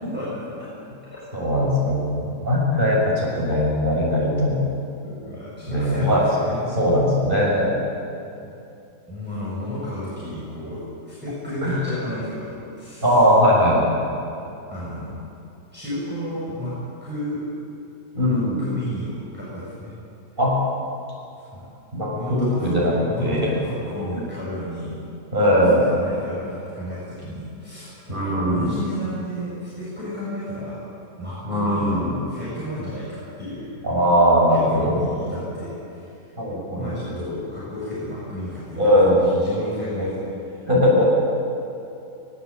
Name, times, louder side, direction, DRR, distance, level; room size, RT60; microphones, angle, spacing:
voice 1, 0.1-0.7 1.1-1.2 5.0-6.9 8.4-8.5 9.1-13.2 14.3-14.4 14.7-15.2 15.7-16.7 17.0-17.4 18.2-19.9 21.4-21.6 22.1-25.0 25.4-30.8 31.2-33.7 34.5-36.3 36.7-38.9 39.2-40.6, equal, 5° right, -10 dB, 7.9 m, -32 dB
voice 2, 1.3-4.6 5.7-6.2 6.8-7.7 11.6-11.8 13.0-13.9 18.1-18.6 20.4-20.5 21.9-22.9 23.2-23.5 25.3-25.8 28.1-28.7 31.5-32.1 33.8-34.9 36.4-36.9 38.8-39.2 39.9-40.1 40.7-41.1, equal, 30° right, -4 dB, 7.2 m, -20 dB
22.5 x 21.0 x 9.0 m, 2.7 s
omnidirectional pair, 1.8 m